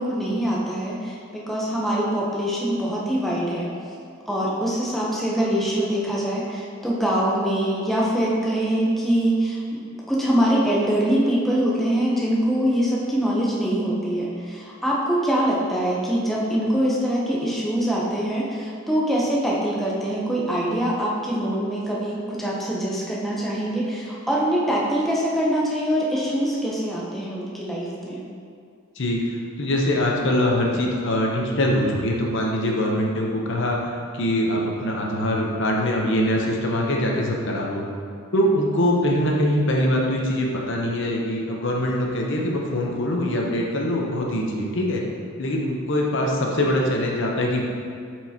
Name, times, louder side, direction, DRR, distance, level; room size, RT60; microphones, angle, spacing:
voice 1, 0.0-3.7 4.3-9.8 10.1-28.2, right 1 dB, ahead, -6 dB, 0.7 m, -24 dB
voice 2, 29.0-37.8 38.3-45.0 45.4-47.6, left 1 dB, 60° left, -1 dB, 0.8 m, -23 dB
7.5 x 4.6 x 2.8 m, 2.3 s
head